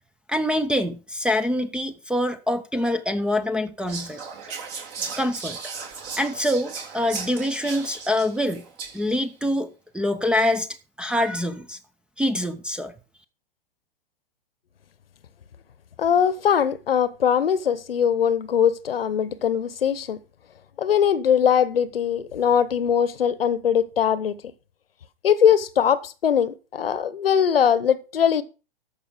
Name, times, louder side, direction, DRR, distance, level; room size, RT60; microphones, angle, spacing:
voice 1, 0.3-4.2 5.2-5.6 6.2-8.7 8.9-9.7 9.9-10.7 11.0-11.8 12.2-12.9, left 1 dB, 5° right, 0.6 m, -25 dB
Whispering, 3.9-9.2, right 5 dB, 45° right, 3.5 m, -36 dB
voice 2, 16.0-20.2 20.8-24.3 25.2-28.4, left 8 dB, 75° left, 1.0 m, -21 dB
13.5 x 5.5 x 4.9 m
hypercardioid pair, 110°, 29 cm